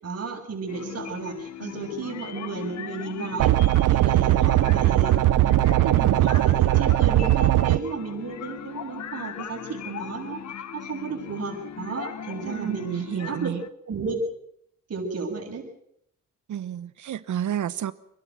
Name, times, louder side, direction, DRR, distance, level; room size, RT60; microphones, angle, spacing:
voice 1, 0.0-3.5 3.9-5.1 5.4-10.4 10.7-13.5 13.9-14.2 14.9-15.6, right 4 dB, 50° right, 2 dB, 7.0 m, -33 dB
sound 1, 0.7-13.7, left 8 dB, 60° left, 1.3 m, -38 dB
sound 2, 3.4-7.8, right 16 dB, 85° right, 0.7 m, -19 dB
voice 2, 12.4-13.6 16.5-17.9, right 10 dB, 70° right, 16 dB, 1.1 m, -30 dB
27.0 x 12.0 x 9.4 m, 0.72 s
cardioid pair, 105°, 31 cm